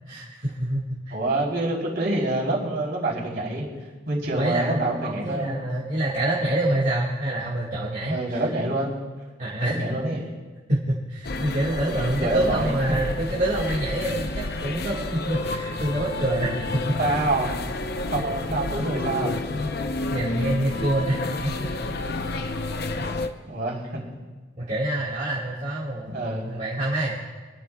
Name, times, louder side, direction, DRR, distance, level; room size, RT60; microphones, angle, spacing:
voice 1, 0.1-1.1 4.3-8.4 9.4-9.8 10.7-16.9 20.1-21.7 24.6-27.2, right 1 dB, 40° right, -7 dB, 1.8 m, -26 dB
voice 2, 1.1-3.6 4.1-5.6 8.1-9.0 9.6-10.3 11.7-13.1 17.0-17.5 18.1-19.4 23.5-24.0 26.1-26.6, right 2 dB, 55° right, -3 dB, 3.6 m, -26 dB
sound 1, 11.2-23.3, left 2 dB, 55° left, 0.7 m, -30 dB
27.5 x 11.5 x 2.3 m, 1.3 s
head